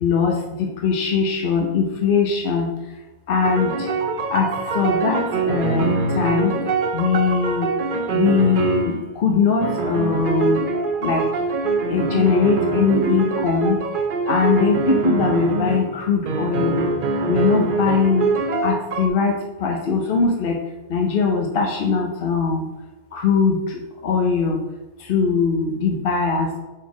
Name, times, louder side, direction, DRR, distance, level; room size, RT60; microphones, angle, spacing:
voice 1, 0.0-2.7 3.3-3.9 4.3-6.6 6.9-7.7 8.1-10.6 11.0-11.3 11.9-13.8 14.3-16.8 17.3-18.3 18.6-20.6 20.9-22.6 23.1-24.6 25.0-26.5, left 5 dB, 50° left, 1 dB, 0.7 m, -21 dB
sound 1, 3.4-9.1 9.6-15.9 16.3-19.1, right 4 dB, 55° right, 0.6 m, -23 dB
5.5 x 4.5 x 4.7 m, 1.1 s
omnidirectional pair, 1.5 m